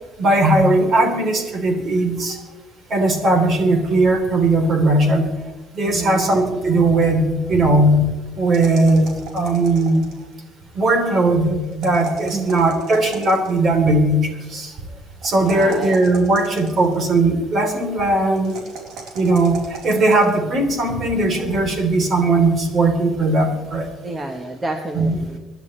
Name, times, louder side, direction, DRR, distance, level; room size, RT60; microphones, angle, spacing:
voice 1, 0.2-2.4 2.9-5.3 5.7-8.0 8.4-10.0 10.7-14.7 15.2-18.6 19.1-19.6 19.8-23.9 24.9-25.2, right 2 dB, 40° right, 3 dB, 3.5 m, -18 dB
voice 2, 5.8-6.4 12.3-12.6 15.4-15.9 24.0-25.4, right 2 dB, 20° right, 3 dB, 1.2 m, -29 dB
sound 1, 8.5-10.3 11.7-13.6 15.2-17.0 18.3-20.3, right 4 dB, 80° right, 4.0 m, -37 dB
25.5 x 11.5 x 3.3 m, 1.2 s
cardioid pair, 145°, 0 cm